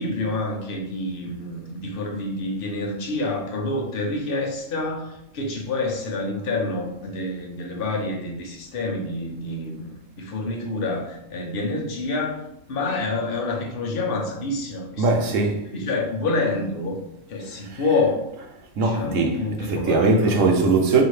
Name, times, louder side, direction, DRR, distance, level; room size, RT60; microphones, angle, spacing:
voice 1, 0.0-9.9 10.2-15.3 15.7-17.0 17.3-18.3 18.7-20.4, left 2 dB, 50° left, 0.9 m, -28 dB
voice 2, 15.0-15.7 17.6-18.0 18.4-18.5 18.8-21.0, right 3 dB, 70° right, 1.1 m, -21 dB
4.8 x 2.7 x 3.2 m
omnidirectional pair, 1.4 m